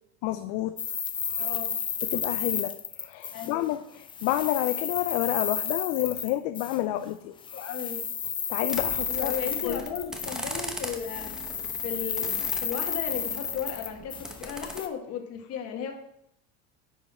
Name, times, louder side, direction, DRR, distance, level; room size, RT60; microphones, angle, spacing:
voice 1, 0.2-0.8 1.3-1.5 2.0-7.7 8.5-9.3 9.6-9.9, left 14 dB, 65° left, 9 dB, 0.6 m, -30 dB
sound 1, 0.8-3.7 4.0-6.8 7.4-10.7 10.9-14.9, left 7 dB, 15° left, 0.3 m, -32 dB
voice 2, 1.4-1.7 3.3-3.6 7.5-8.0 9.1-11.4 11.8-12.3 12.6-15.9, left 8 dB, 50° left, 4 dB, 1.7 m, -35 dB
sound 2, 8.7-14.8, equal, ahead, 0.9 m, -40 dB
10.0 x 5.6 x 4.3 m, 0.74 s
cardioid pair, 145°, 33 cm